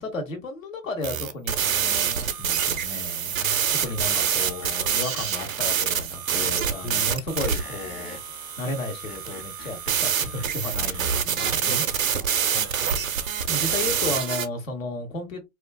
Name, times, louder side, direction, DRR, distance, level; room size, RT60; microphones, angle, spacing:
voice 1, 0.0-11.8 13.0-15.5, left 2 dB, 75° left, 1.2 m, -34 dB
sound 1, 1.0-14.5, right 8 dB, 90° right, 0.5 m, -26 dB
Screech, 3.8-5.8 7.4-8.3 8.9-11.1, left 4 dB, 35° left, 0.8 m, -46 dB
voice 2, 6.8-7.3 11.4-13.1, equal, 5° right, 0.3 m, -39 dB
2.4 x 2.3 x 2.2 m
figure-of-eight pair, 100°, 39 cm